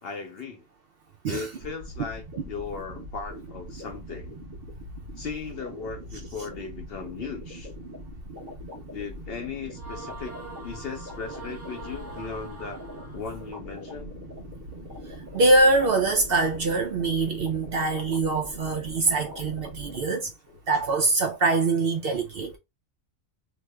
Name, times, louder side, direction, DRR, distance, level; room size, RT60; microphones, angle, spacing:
voice 1, 0.0-0.6 1.2-4.4 5.2-7.7 8.9-12.9 13.1-14.1 19.9-20.1, left 5 dB, 60° left, 0.7 m, -37 dB
sound 1, 1.6-20.1, equal, 40° right, 1.1 m, -41 dB
sound 2, 9.7-13.6, right 3 dB, 10° right, 0.9 m, -44 dB
voice 2, 15.3-20.3 20.7-22.6, right 2 dB, 60° right, 0.7 m, -23 dB
3.0 x 2.1 x 3.3 m
omnidirectional pair, 1.4 m